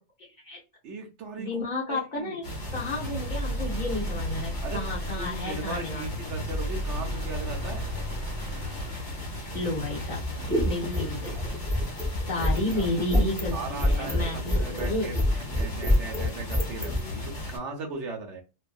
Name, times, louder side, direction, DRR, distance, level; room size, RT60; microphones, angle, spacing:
voice 1, 0.2-0.6 1.4-2.4 2.7-6.0 9.5-10.2 10.5-11.6 12.3-15.1, left 2 dB, 45° left, -4 dB, 0.8 m, -32 dB
voice 2, 0.8-2.4 4.6-4.8 5.2-7.9 12.7-12.9 13.5-18.4, right 3 dB, 65° right, 2 dB, 1.0 m, -38 dB
sound 1, 2.4-17.6, left 2 dB, 60° left, 1.3 m, -36 dB
sound 2, 2.6-11.8 12.1-12.9, right 1 dB, 45° right, 1.2 m, -36 dB
sound 3, 10.2-17.0, left 1 dB, 10° left, 0.3 m, -26 dB
2.6 x 2.5 x 2.2 m, 0.28 s
omnidirectional pair, 1.3 m